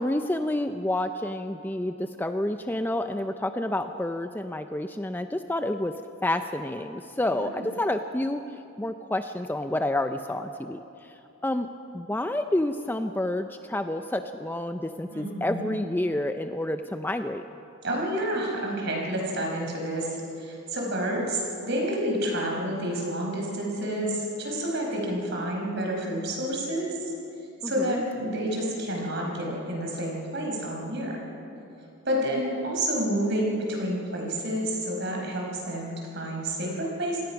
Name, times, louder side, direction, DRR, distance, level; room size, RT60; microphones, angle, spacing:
voice 1, 0.0-6.0 6.2-8.4 8.8-11.1 11.4-11.7 11.9-17.4 27.6-28.0, left 1 dB, 10° left, 7 dB, 0.5 m, -29 dB
voice 2, 7.3-7.6 15.1-15.7 17.8-27.1 27.6-31.2 32.0-37.2, right 1 dB, 50° right, 0 dB, 5.0 m, -29 dB
26.5 x 18.5 x 5.9 m, 2.8 s
head